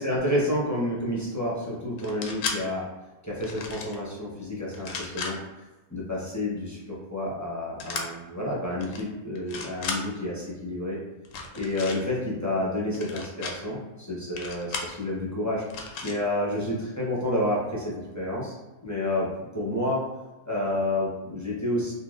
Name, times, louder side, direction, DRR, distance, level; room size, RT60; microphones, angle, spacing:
voice 1, 0.0-2.8 3.2-5.4 5.9-11.0 11.5-15.6 16.0-18.6 18.8-19.3 19.5-20.0 20.5-21.9, left 1 dB, 20° left, -6 dB, 0.6 m, -29 dB
sound 1, 2.0-2.6 3.4-4.0 4.7-5.3 7.8-8.1 8.8-9.0 9.4-10.0 11.2-12.0 12.9-13.5 14.4-14.9 15.7-16.2, left 4 dB, 90° left, 1.0 m, -34 dB
3.7 x 2.7 x 2.4 m, 1.1 s
omnidirectional pair, 1.3 m